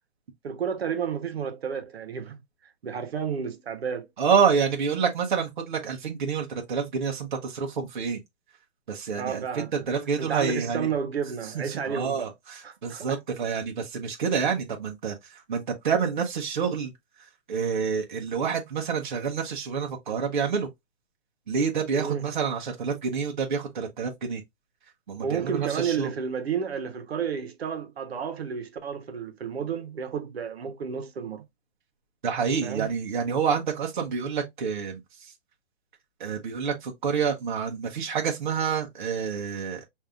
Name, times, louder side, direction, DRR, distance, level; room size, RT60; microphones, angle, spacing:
voice 1, 0.4-2.4 2.8-4.1 9.2-9.7 10.2-12.3 12.6-13.2 21.9-22.3 25.2-31.4 32.6-32.9, right 7 dB, 75° right, 1.1 m, -31 dB
voice 2, 4.2-8.2 8.9-10.9 11.4-16.9 17.2-20.7 21.5-24.4 25.1-26.1 32.2-35.3 36.2-39.8, right 6 dB, 50° right, 0.9 m, -28 dB
5.2 x 2.7 x 2.4 m
hypercardioid pair, 180°, 31 cm